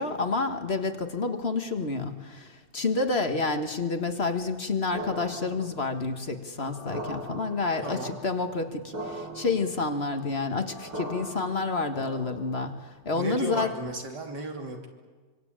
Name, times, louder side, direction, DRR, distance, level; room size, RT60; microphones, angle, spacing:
voice 1, 0.0-13.7, left 3 dB, 35° left, 7 dB, 1.7 m, -29 dB
sound 1, 4.9-12.7, right 1 dB, 90° right, 8.8 m, -40 dB
voice 2, 7.8-8.2 13.1-14.9, right 2 dB, 70° right, 2 dB, 3.8 m, -35 dB
25.5 x 25.0 x 8.8 m, 1.4 s
omnidirectional pair, 1.9 m